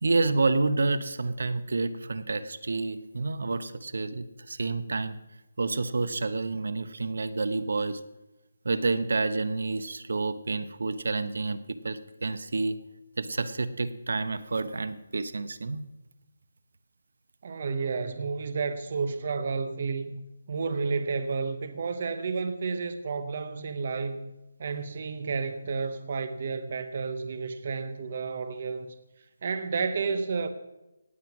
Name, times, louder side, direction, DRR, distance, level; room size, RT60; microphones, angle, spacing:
voice 1, 0.0-5.2 5.6-8.0 8.6-11.6 11.8-12.8 13.2-15.8, right 3 dB, 65° right, 0.8 m, -29 dB
voice 2, 17.4-20.2 20.5-24.3 24.6-28.9 29.4-30.5, right 4 dB, 35° right, 0.7 m, -31 dB
18.0 x 7.6 x 5.9 m
hypercardioid pair, 175°, 0 cm